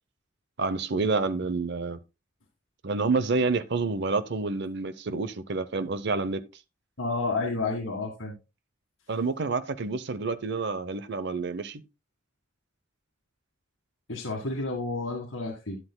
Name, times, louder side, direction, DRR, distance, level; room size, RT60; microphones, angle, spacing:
voice 1, 0.6-2.0 2.8-6.4 9.1-11.8, right 3 dB, 60° right, 0.8 m, -28 dB
voice 2, 7.0-8.4 14.1-15.8, left 3 dB, 80° left, 1.9 m, -30 dB
11.5 x 10.5 x 2.3 m
head